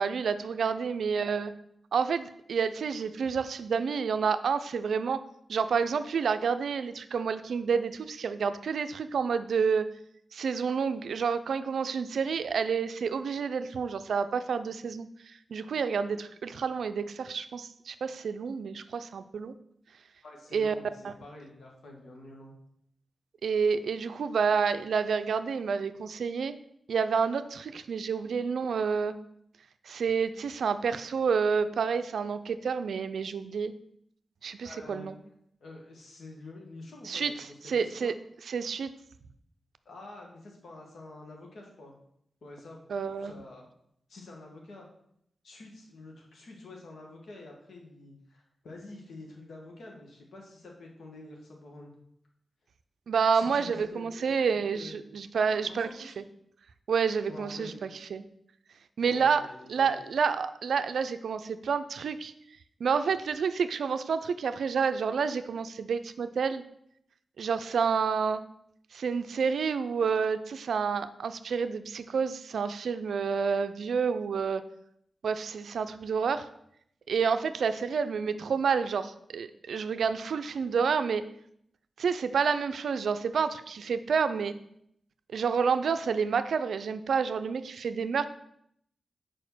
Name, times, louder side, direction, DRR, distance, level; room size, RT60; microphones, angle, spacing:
voice 1, 0.0-1.5 1.9-5.2 5.5-9.9 10.3-19.5 20.5-20.7 21.0-21.1 23.4-26.5 26.9-29.1 29.9-33.7 34.4-35.2 37.1-37.3 37.7-38.1 38.5-38.9 42.9-43.3 53.1-56.2 56.9-58.2 59.0-62.3 62.8-66.6 67.4-68.4 68.9-74.6 75.2-76.5 77.1-81.2 82.0-84.5 85.3-88.3, right 6 dB, 80° right, 11 dB, 0.4 m, -29 dB
voice 2, 20.2-22.5 34.6-35.1 35.6-38.2 39.8-41.9 42.4-43.7 44.1-44.9 45.4-51.9 53.3-54.3 54.7-55.0 55.3-56.2 57.3-57.9 59.0-60.0, left 2 dB, 80° left, 0 dB, 1.6 m, -47 dB
4.9 x 4.9 x 6.1 m, 0.73 s
cardioid pair, 45°, 0 cm